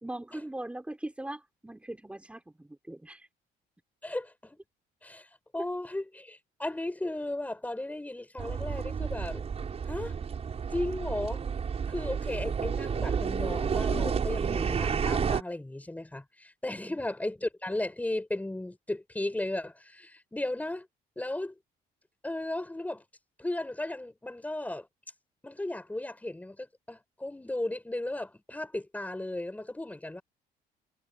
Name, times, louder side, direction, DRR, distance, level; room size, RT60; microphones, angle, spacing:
voice 1, 0.0-3.3 16.7-17.0, right 1 dB, 5° right, 3.5 m, -40 dB
voice 2, 4.0-4.6 5.0-9.4 9.9-10.2 10.7-11.4 11.9-20.9 21.2-21.5 22.2-23.0 23.4-24.9 25.4-30.2, left 1 dB, 10° left, 6.0 m, -35 dB
sound 1, 8.4-15.4, right 6 dB, 40° right, 6.3 m, -31 dB
cardioid pair, 110°, 17 cm